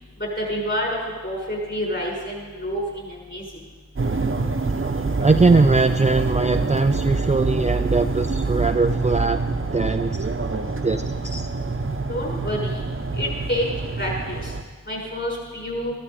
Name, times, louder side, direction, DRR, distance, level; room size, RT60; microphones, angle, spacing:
voice 1, 0.2-1.0 1.2-3.5 12.1-12.8 13.2-13.7 14.0-14.5 14.9-15.9, equal, 35° left, -2 dB, 5.8 m, -28 dB
sound 1, 4.0-14.6, right 3 dB, 40° right, 1.1 m, -26 dB
voice 2, 5.2-9.4 9.7-10.2 10.8-11.5, right 3 dB, 20° right, 6 dB, 0.6 m, -20 dB
14.0 x 13.5 x 5.1 m, 1.4 s
cardioid pair, 45°, 33 cm